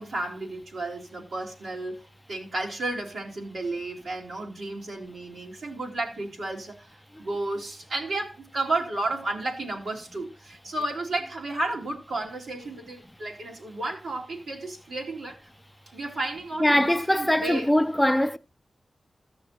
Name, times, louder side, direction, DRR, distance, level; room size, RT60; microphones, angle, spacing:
voice 1, 0.0-2.0 2.3-6.9 7.2-15.5 15.9-17.7, right 2 dB, 80° right, 2.5 m, -32 dB
voice 2, 16.6-18.4, left 1 dB, 10° left, 0.4 m, -22 dB
14.0 x 6.4 x 4.2 m
cardioid pair, 65°, 0 cm